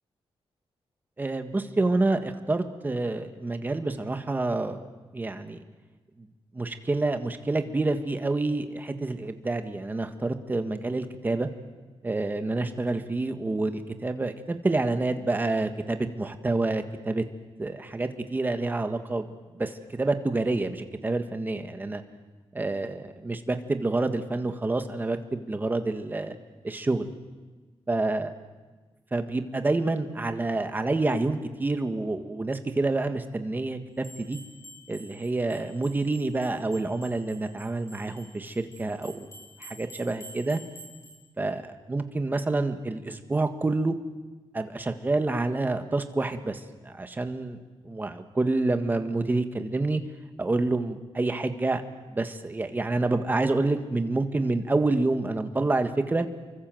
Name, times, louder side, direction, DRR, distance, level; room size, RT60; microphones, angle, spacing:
voice 1, 1.2-4.8 5.1-5.6 6.2-6.3 6.5-11.5 12.0-17.2 17.6-19.3 19.5-19.7 20.0-22.0 22.5-26.4 26.6-27.1 27.9-28.3 29.1-34.4 34.9-39.3 39.6-40.6 41.4-41.6 41.9-43.9 44.5-47.6 47.8-50.0 50.4-51.8 52.1-56.3, right 2 dB, 20° right, 7 dB, 1.7 m, -28 dB
sound 1, 34.0-41.2, equal, 30° left, 7.0 m, -49 dB
29.5 x 24.0 x 7.9 m, 1.3 s
wide cardioid pair, 180°, 10 cm